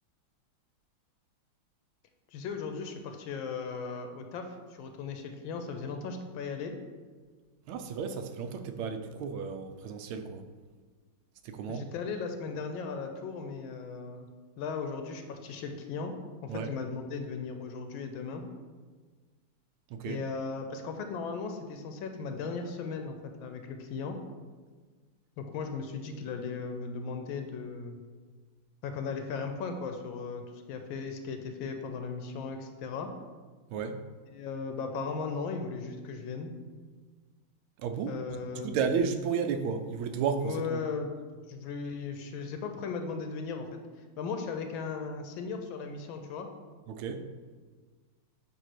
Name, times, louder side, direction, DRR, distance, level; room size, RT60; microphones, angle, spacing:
voice 1, 2.3-6.7 11.7-14.3 14.6-16.1 16.4-18.4 20.0-24.2 25.4-28.0 28.8-30.4 30.7-33.1 34.3-36.6 38.1-38.7 40.4-41.1 41.5-43.8 44.2-46.5, left 5 dB, 80° left, 6 dB, 1.4 m, -37 dB
voice 2, 7.7-10.4 11.4-11.9 16.5-16.7 19.9-20.2 33.7-34.0 37.8-38.2 38.6-40.8 46.9-47.3, right 6 dB, 85° right, 7 dB, 1.4 m, -33 dB
8.0 x 2.7 x 5.8 m, 1.4 s
omnidirectional pair, 2.3 m